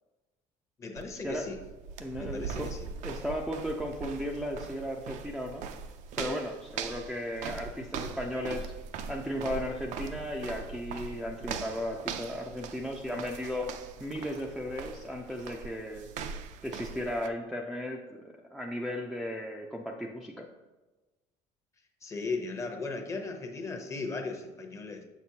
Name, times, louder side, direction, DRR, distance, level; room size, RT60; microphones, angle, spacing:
voice 1, 0.8-1.6 2.2-2.8 22.0-25.0, left 3 dB, 25° left, 4 dB, 0.8 m, -37 dB
sound 1, 1.0-17.3, right 6 dB, 70° right, 0.5 m, -41 dB
voice 2, 2.0-2.7 3.0-5.6 6.2-8.7 9.1-13.7 14.0-16.1 16.6-18.0 18.5-20.5, equal, ahead, -1 dB, 0.4 m, -35 dB
6.4 x 6.0 x 2.8 m, 1.2 s
cardioid pair, 140°, 13 cm